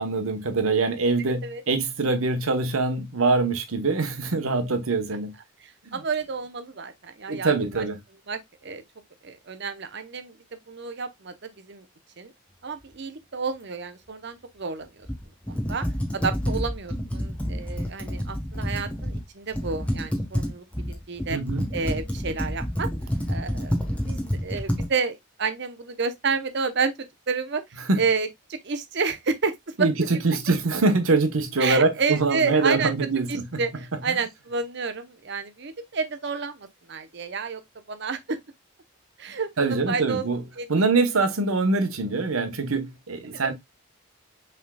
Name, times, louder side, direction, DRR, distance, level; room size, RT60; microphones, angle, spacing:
voice 1, 0.0-5.3 5.9-6.0 7.3-8.0 21.3-21.7 27.9-28.0 29.8-33.6 34.1-34.2 39.6-40.4 40.7-43.5, right 3 dB, 85° right, 1.0 m, -24 dB
voice 2, 5.6-7.9 8.3-8.8 9.2-11.9 12.2-12.3 12.6-15.1 15.5-15.9 16.1-21.4 21.7-22.9 23.3-23.8 24.1-26.9 27.3-30.1 31.6-32.9 33.3-37.6 37.9-38.4 39.2-39.5 39.9-40.2 40.6-40.7 43.3-43.5, right 5 dB, 55° right, 0.7 m, -30 dB
Computer keyboard, 15.1-19.2 19.5-24.9, equal, 5° left, 1.0 m, -29 dB
5.9 x 3.6 x 2.2 m
head